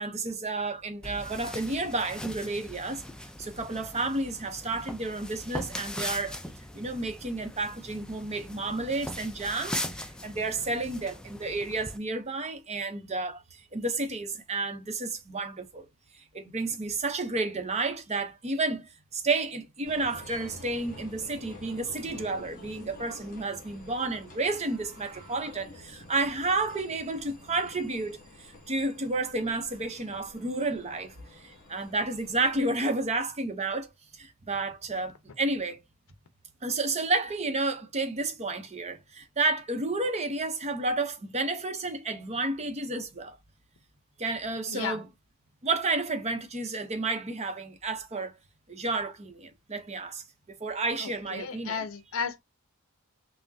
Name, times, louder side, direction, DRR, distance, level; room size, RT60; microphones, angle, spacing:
voice 1, 0.0-3.0 3.4-6.4 6.7-15.9 16.3-33.9 34.2-35.8 36.6-43.4 44.2-45.1 45.6-48.3 48.7-50.2 50.6-51.8, right 3 dB, 30° right, 0.7 m, -31 dB
sound 1, 1.0-12.0, left 1 dB, 5° left, 0.3 m, -40 dB
sound 2, 19.8-32.6, left 2 dB, 40° left, 2.4 m, -49 dB
voice 2, 44.7-45.0 51.0-52.4, left 6 dB, 60° left, 0.7 m, -34 dB
5.8 x 2.1 x 2.6 m
head